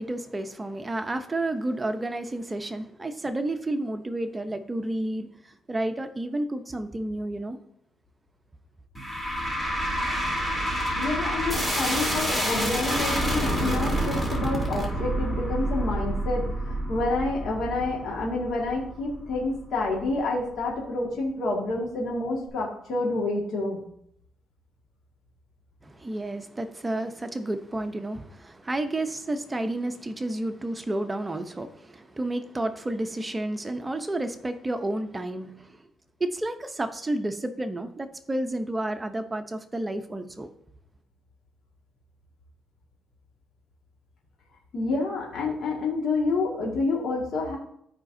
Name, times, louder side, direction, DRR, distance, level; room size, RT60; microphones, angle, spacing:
voice 1, 0.0-7.6 25.8-35.8 36.2-40.5, right 1 dB, 20° right, 0.8 m, -31 dB
sound 1, 9.0-20.2, right 1 dB, 10° left, 2.8 m, -28 dB
voice 2, 11.0-23.8 44.7-47.6, left 2 dB, 65° left, 1.9 m, -28 dB
13.5 x 5.0 x 2.7 m
cardioid pair, 90°, 0 cm